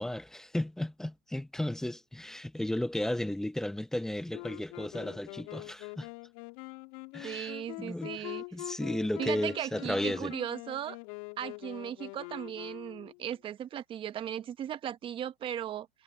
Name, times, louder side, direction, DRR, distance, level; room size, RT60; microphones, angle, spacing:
voice 1, 0.0-6.1 7.1-7.5 7.8-10.3, left 1 dB, ahead, 0.7 m, -34 dB
Wind instrument woodwind instrument, 4.3-13.3, left 31 dB, 35° left, 3.4 m, -44 dB
voice 2, 7.2-8.4 9.2-11.0 11.4-16.0, right 10 dB, 15° right, 1.3 m, -37 dB
hypercardioid pair, 140°, 30 cm